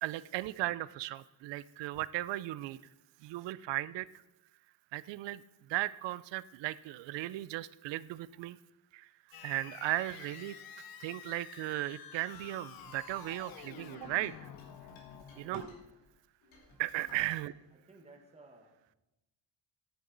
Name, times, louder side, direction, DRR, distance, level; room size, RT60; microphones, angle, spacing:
voice 1, 0.0-2.8 3.2-4.1 4.9-5.4 5.7-8.6 8.9-9.1 9.4-10.6 11.0-14.5 15.4-15.6 16.8-17.5, right 16 dB, 70° right, 18 dB, 0.5 m, -36 dB
sound 1, 9.3-15.8, left 9 dB, 55° left, 0.7 m, -50 dB
sound 2, 12.7-16.1 16.4-17.4, left 2 dB, 85° left, 2.7 m, -55 dB
voice 2, 15.2-15.7 17.2-17.4 17.7-18.9, right 3 dB, 15° right, 3 dB, 1.2 m, -58 dB
10.0 x 9.7 x 3.9 m, 0.95 s
cardioid pair, 175°, 45 cm